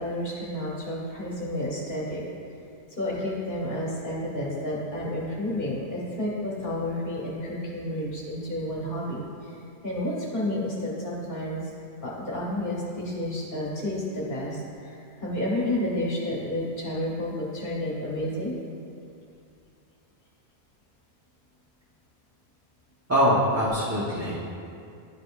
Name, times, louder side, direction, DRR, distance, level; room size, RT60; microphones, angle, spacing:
voice 1, 0.0-2.2 2.9-11.6 12.0-18.6, left 1 dB, 50° left, -6 dB, 1.3 m, -31 dB
voice 2, 23.1-24.5, equal, 15° right, -9 dB, 0.8 m, -23 dB
11.5 x 5.1 x 2.4 m, 2.5 s
omnidirectional pair, 1.1 m